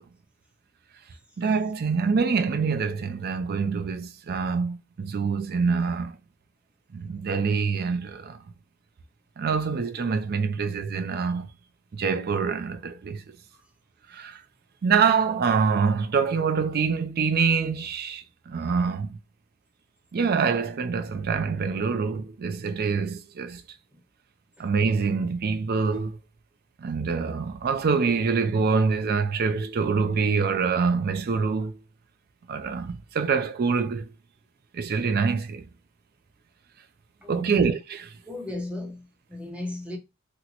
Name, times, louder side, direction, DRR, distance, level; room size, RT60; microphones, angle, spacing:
voice 1, 1.4-6.1 6.9-8.4 9.4-11.5 12.0-13.2 14.1-14.4 14.8-19.2 20.1-23.6 24.6-26.2 26.8-31.7 32.5-34.1 34.7-35.7 37.3-38.0, right 5 dB, 45° right, 0.4 m, -25 dB
voice 2, 37.2-37.6 38.2-40.0, left 2 dB, 5° right, 0.7 m, -35 dB
2.9 x 2.1 x 3.8 m
head